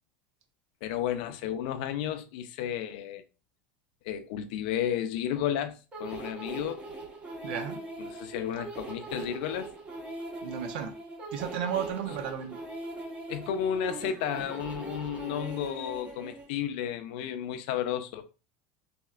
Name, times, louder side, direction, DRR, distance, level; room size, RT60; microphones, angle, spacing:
voice 1, 0.8-3.2 4.0-6.8 8.0-9.7 13.3-18.3, left 9 dB, 75° left, 0.5 m, -32 dB
sound 1, 5.9-16.5, right 2 dB, 25° right, 1.1 m, -41 dB
voice 2, 7.4-7.8 10.4-10.9 11.3-12.6, right 8 dB, 80° right, 0.7 m, -33 dB
4.2 x 2.8 x 2.4 m
supercardioid pair, 130°, 5 cm